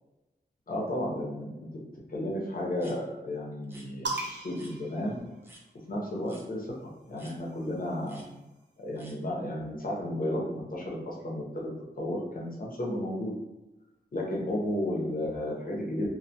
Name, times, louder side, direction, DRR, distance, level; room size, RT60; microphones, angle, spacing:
voice 1, 0.7-1.7 2.1-5.2 5.9-6.7 7.1-8.2 8.8-11.4 12.0-13.3 14.1-16.1, left 1 dB, 50° left, -3 dB, 0.6 m, -33 dB
sound 1, 2.8-3.0 3.6-3.9 4.6-4.7 5.4-5.6 6.3-6.5 7.2-7.4 8.0-8.3 9.0-9.2, right 1 dB, 10° right, 0.5 m, -52 dB
sound 2, 4.0-5.8 7.0-8.6, right 2 dB, 80° right, 0.5 m, -40 dB
2.1 x 2.1 x 2.7 m, 1.0 s
wide cardioid pair, 105°, 18 cm